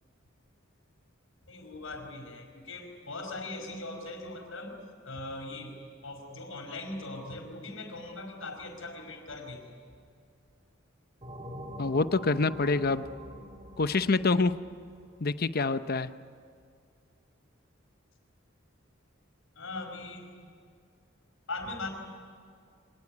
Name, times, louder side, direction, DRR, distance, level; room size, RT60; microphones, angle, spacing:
voice 1, 1.5-4.8 5.0-5.8 6.0-9.7 19.5-20.3 21.5-21.9, left 2 dB, 80° left, 3 dB, 4.8 m, -40 dB
sound 1, 11.2-15.6, equal, 30° right, 2.7 m, -45 dB
voice 2, 11.8-13.0 13.8-14.5 15.2-16.1, left 3 dB, 50° left, 12 dB, 0.8 m, -26 dB
25.0 x 19.5 x 9.7 m, 2.2 s
head